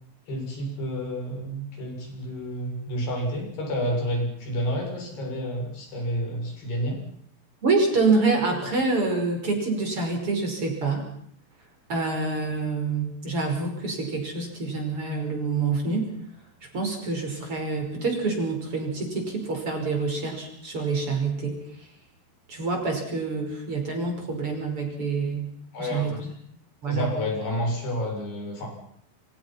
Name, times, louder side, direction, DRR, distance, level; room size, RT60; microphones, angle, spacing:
voice 1, 0.3-7.0 25.7-26.3 26.9-28.7, equal, 85° left, 1 dB, 9.1 m, -30 dB
voice 2, 7.6-11.0 11.9-16.1 16.7-21.6 22.5-25.5 25.8-26.3 26.8-27.1, right 3 dB, 35° right, 3 dB, 6.4 m, -26 dB
28.0 x 26.5 x 6.0 m, 0.65 s
omnidirectional pair, 4.6 m